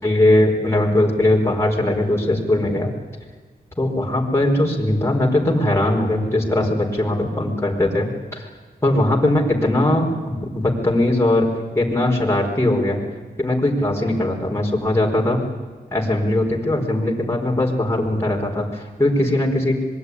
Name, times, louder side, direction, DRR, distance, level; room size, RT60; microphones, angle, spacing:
voice 1, 0.0-2.9 3.8-8.5 8.8-11.5 11.7-13.0 13.4-15.4 15.9-19.8, left 1 dB, 15° left, -1 dB, 5.0 m, -20 dB
25.5 x 21.5 x 10.0 m, 1.4 s
cardioid pair, 85°, 17 cm